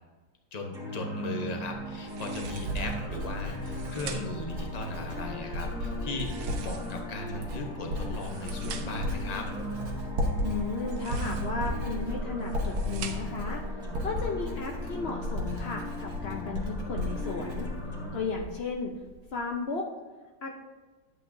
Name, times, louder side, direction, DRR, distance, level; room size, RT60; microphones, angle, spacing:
voice 1, 0.5-9.5, left 2 dB, 35° left, 2 dB, 0.7 m, -37 dB
sound 1, 0.7-18.2, equal, ahead, 1.5 m, -39 dB
Writing, 1.7-18.7 19.0-19.5, equal, 55° right, 1.6 m, -35 dB
sound 2, 2.0-2.9 3.5-4.5 6.1-7.2 8.0-9.1 10.8-11.7 12.3-13.5, right 7 dB, 85° right, 1.6 m, -44 dB
voice 2, 10.4-13.6 14.0-17.7 18.1-18.9 19.3-19.9 20.4-20.5, left 4 dB, 80° left, 0 dB, 0.5 m, -34 dB
11.5 x 8.5 x 2.7 m, 1.2 s
omnidirectional pair, 2.2 m